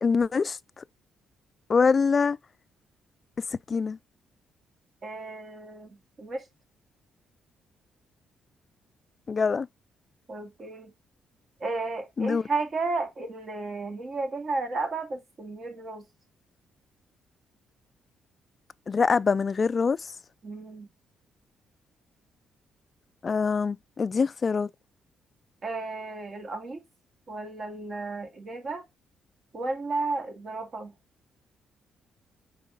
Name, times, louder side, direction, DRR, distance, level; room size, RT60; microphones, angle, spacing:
voice 1, 0.0-0.8 1.7-2.4 3.7-4.0 9.3-9.7 12.2-12.4 18.9-20.1 23.2-24.7, left 5 dB, 40° left, 0.3 m, -24 dB
voice 2, 5.0-6.4 10.3-10.9 11.6-16.0 20.4-20.9 25.6-26.8 27.3-28.8 29.5-30.9, right 3 dB, 45° right, 2.1 m, -33 dB
5.2 x 4.5 x 4.0 m
cardioid pair, 90°, 0 cm